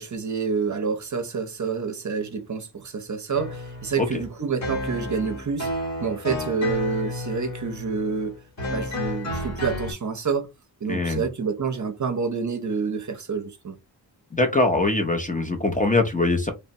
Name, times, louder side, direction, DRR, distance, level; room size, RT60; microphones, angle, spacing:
voice 1, 0.0-5.7 6.0-8.4 8.7-10.5 10.8-13.8, right 5 dB, 45° right, 0.6 m, -28 dB
sound 1, 3.3-9.9, left 2 dB, 40° left, 1.1 m, -32 dB
voice 2, 10.9-11.2 14.3-16.5, left 2 dB, 20° left, 0.5 m, -22 dB
3.1 x 2.0 x 2.6 m
wide cardioid pair, 105°, 43 cm